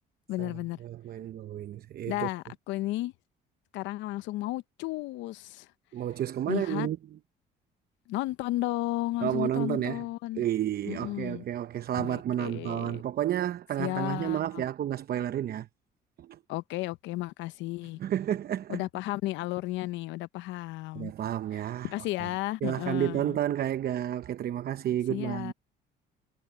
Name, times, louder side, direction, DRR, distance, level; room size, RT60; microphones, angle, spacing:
voice 1, 0.3-0.8 2.1-3.1 3.7-5.7 6.5-6.9 8.1-10.4 10.9-11.4 11.9-13.0 13.8-14.6 16.5-18.0 18.7-21.1 21.5-23.4 25.1-25.5, left 17 dB, 80° left, 0.8 m, -33 dB
voice 2, 0.8-2.3 5.9-7.0 9.2-10.0 10.4-15.7 16.2-16.4 18.0-18.8 20.9-21.9 22.2-22.3 22.6-25.5, right 11 dB, 55° right, 0.9 m, -31 dB
supercardioid pair, 80°, 19 cm